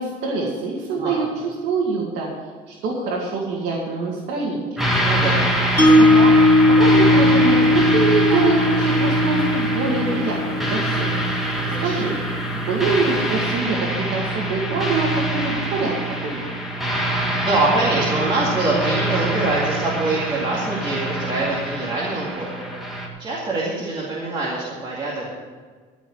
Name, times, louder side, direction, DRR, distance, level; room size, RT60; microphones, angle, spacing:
voice 1, 0.0-4.8 5.7-11.5 11.8-12.2 12.5-16.5, right 3 dB, 80° right, -3 dB, 2.3 m, -25 dB
sound 1, 4.8-23.1, right 2 dB, ahead, 1.7 m, -24 dB
voice 2, 5.0-5.5 8.3-8.7 11.6-12.0 17.0-25.3, right 2 dB, 30° right, -6 dB, 2.4 m, -25 dB
Mallet percussion, 5.8-11.9, left 2 dB, 15° left, 1.8 m, -18 dB
14.5 x 5.2 x 8.9 m, 1.5 s
cardioid pair, 150°, 17 cm